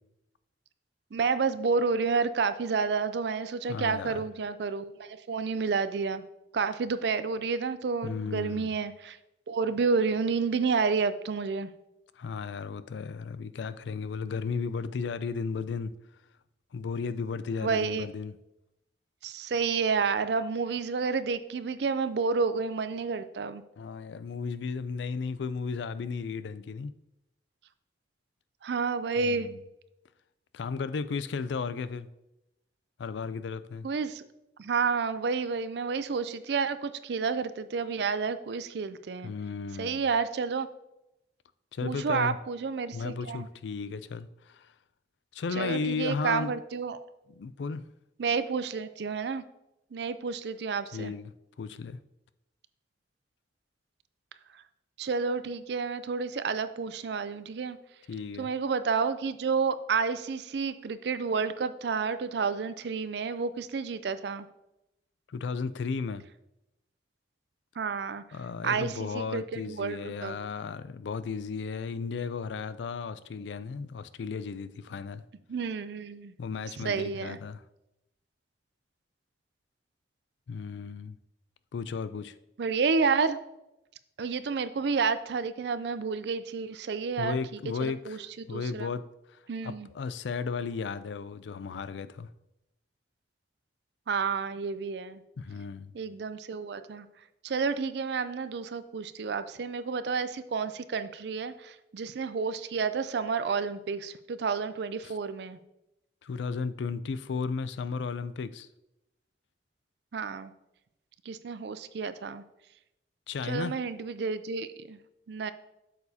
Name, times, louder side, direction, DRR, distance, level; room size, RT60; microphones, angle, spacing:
voice 1, 1.1-6.2 6.5-9.2 9.5-11.7 17.6-18.1 19.2-23.6 28.6-29.5 33.8-34.2 34.6-39.3 39.8-40.7 41.8-43.5 45.6-47.0 48.2-49.4 49.9-51.1 55.0-57.8 58.4-64.5 67.8-68.2 68.6-70.4 75.5-76.3 76.8-77.4 82.6-83.4 84.2-88.9 89.5-89.9 94.1-95.2 95.9-97.1 97.4-105.6 110.1-110.5 111.3-112.4 113.4-115.0 115.3-115.5, right 5 dB, 65° right, 0.4 m, -30 dB
voice 2, 3.7-4.3 8.0-8.7 12.2-15.9 16.7-18.3 23.8-26.9 29.2-29.6 30.5-32.1 33.0-33.9 39.2-40.0 41.7-42.4 42.9-44.7 45.3-46.5 47.4-47.8 50.9-51.3 51.6-52.0 58.1-58.5 65.3-66.2 68.3-75.2 76.4-77.6 80.5-81.2 81.7-82.4 87.2-88.2 88.5-92.3 95.4-95.9 105.0-105.1 106.2-108.7 113.3-113.7, left 5 dB, 75° left, 0.4 m, -34 dB
8.3 x 6.8 x 2.8 m
head